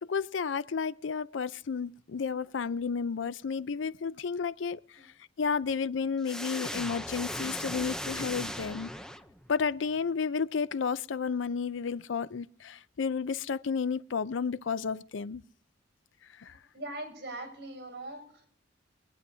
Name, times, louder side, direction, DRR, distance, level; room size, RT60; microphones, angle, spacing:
voice 1, 0.0-4.8 5.4-8.9 9.5-15.4 16.4-16.5, left 5 dB, 90° left, 0.5 m, -32 dB
sound 1, 6.2-9.6, equal, 5° left, 0.7 m, -37 dB
voice 2, 16.7-18.5, right 1 dB, 60° right, 6.6 m, -41 dB
24.0 x 9.7 x 2.8 m
head